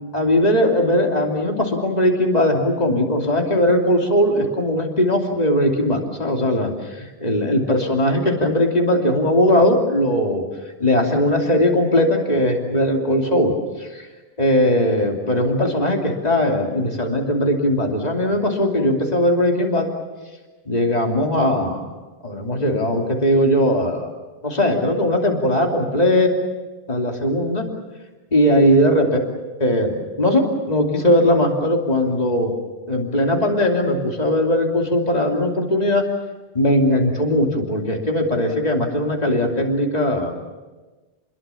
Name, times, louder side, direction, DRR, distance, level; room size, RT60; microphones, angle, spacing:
voice 1, 0.1-10.4 10.8-13.5 13.8-14.1 14.4-19.9 20.7-21.9 22.2-24.1 24.4-26.3 26.9-27.7 28.3-29.1 29.6-32.5 32.9-36.1 36.5-40.3, left 1 dB, 40° left, 1 dB, 3.1 m, -19 dB
29.5 x 22.0 x 7.2 m, 1.2 s
omnidirectional pair, 1.1 m